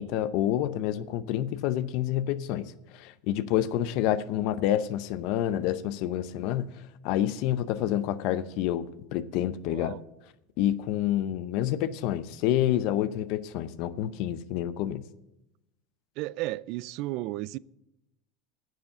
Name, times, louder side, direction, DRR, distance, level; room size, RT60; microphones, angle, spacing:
voice 1, 0.0-6.7 7.0-10.0 10.6-15.0, left 12 dB, 60° left, 0.6 m, -28 dB
voice 2, 9.7-10.0 16.2-17.6, right 18 dB, 60° right, 0.3 m, -34 dB
9.4 x 7.1 x 8.8 m
supercardioid pair, 115°, 0 cm